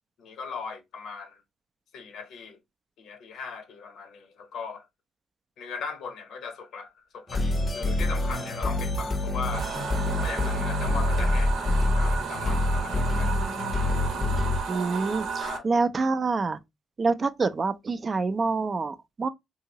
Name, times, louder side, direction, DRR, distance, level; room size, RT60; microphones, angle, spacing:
voice 1, 0.2-1.4 1.9-2.6 3.0-4.9 5.6-9.7 10.2-13.3 15.4-15.7, left 5 dB, 75° left, 0.8 m, -39 dB
sound 1, 7.3-14.6, left 2 dB, 35° left, 0.6 m, -26 dB
Bowed string instrument, 7.3-11.4, right 3 dB, 20° right, 0.9 m, -42 dB
sound 2, 9.5-15.6, right 6 dB, 80° right, 0.8 m, -33 dB
voice 2, 14.7-16.6 17.0-19.3, right 4 dB, 35° right, 0.4 m, -26 dB
2.8 x 2.8 x 2.7 m
cardioid pair, 90°, 0 cm